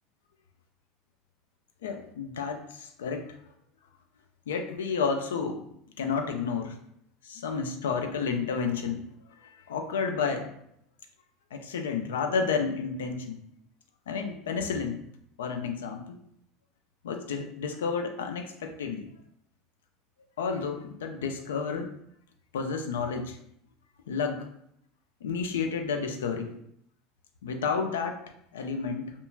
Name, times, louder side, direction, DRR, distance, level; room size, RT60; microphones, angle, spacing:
voice 1, 1.8-3.3 4.5-5.6 6.0-6.7 7.2-9.1 9.7-10.5 11.5-13.4 14.1-15.0 15.4-16.0 17.0-19.1 20.4-21.9 22.5-23.4 24.1-24.5 25.2-26.6 27.4-28.2 28.5-29.1, left 5 dB, 80° left, 5 dB, 0.3 m, -31 dB
2.7 x 2.3 x 2.6 m, 0.72 s
hypercardioid pair, 80°, 0 cm